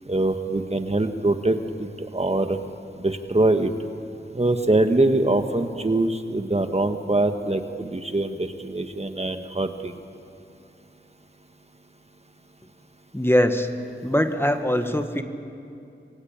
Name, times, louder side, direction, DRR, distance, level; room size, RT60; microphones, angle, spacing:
voice 1, 0.1-2.6 3.0-3.7 4.3-9.9, right 2 dB, 30° right, 7 dB, 1.5 m, -23 dB
voice 2, 13.1-13.7 14.0-15.2, equal, 10° left, 6 dB, 1.6 m, -22 dB
28.0 x 23.0 x 8.8 m, 2.5 s
wide cardioid pair, 70°, 20 cm